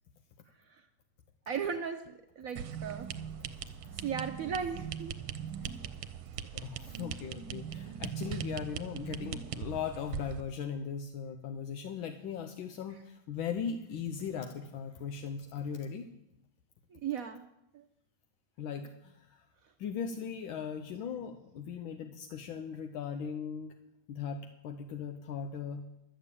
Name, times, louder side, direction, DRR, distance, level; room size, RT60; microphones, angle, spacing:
voice 1, 1.5-3.1 3.9-5.1 16.9-17.5 17.7-17.8, right 7 dB, 65° right, 6 dB, 0.9 m, -36 dB
sound 1, 2.6-10.4, right 8 dB, 85° right, 1.5 m, -40 dB
voice 2, 6.5-16.1 18.6-19.4 19.8-23.7 24.1-25.8, left 7 dB, 80° left, 6 dB, 1.6 m, -38 dB
12.5 x 7.0 x 8.4 m, 0.84 s
omnidirectional pair, 2.2 m